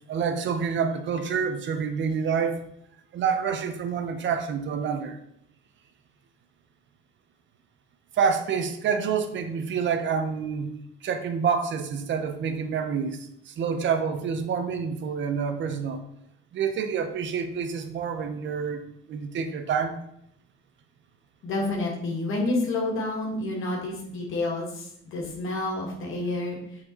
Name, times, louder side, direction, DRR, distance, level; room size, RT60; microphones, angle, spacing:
voice 1, 0.1-2.6 3.1-5.2 8.1-10.7 11.0-16.0 16.5-20.0, right 6 dB, 60° right, 7 dB, 0.9 m, -27 dB
voice 2, 21.4-26.6, left 2 dB, 70° left, -2 dB, 1.9 m, -29 dB
6.3 x 4.5 x 4.4 m, 0.75 s
cardioid pair, 125°, 21 cm